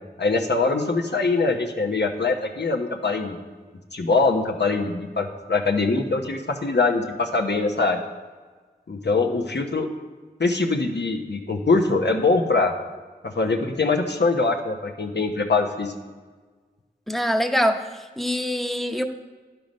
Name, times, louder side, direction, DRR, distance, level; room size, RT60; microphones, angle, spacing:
voice 1, 0.2-3.4 3.9-8.0 8.9-9.9 10.4-12.7 13.2-15.9, left 3 dB, 85° left, 2 dB, 0.9 m, -23 dB
voice 2, 17.1-19.1, equal, ahead, 6 dB, 0.8 m, -24 dB
11.0 x 5.7 x 5.3 m, 1.4 s
wide cardioid pair, 45°, 17 cm